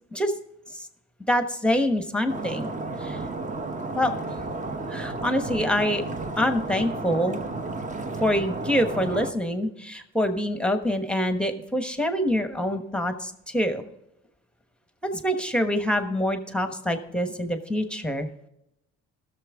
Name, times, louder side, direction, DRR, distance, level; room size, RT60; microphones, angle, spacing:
voice 1, 1.3-2.7 3.0-3.2 4.0-4.1 4.9-6.0 6.4-7.4 8.2-13.8 15.0-18.3, equal, 5° left, 7 dB, 1.1 m, -25 dB
Stream, 2.3-9.3, right 3 dB, 25° right, 1.0 m, -32 dB
17.5 x 6.7 x 3.6 m, 0.84 s
cardioid pair, 90°, 30 cm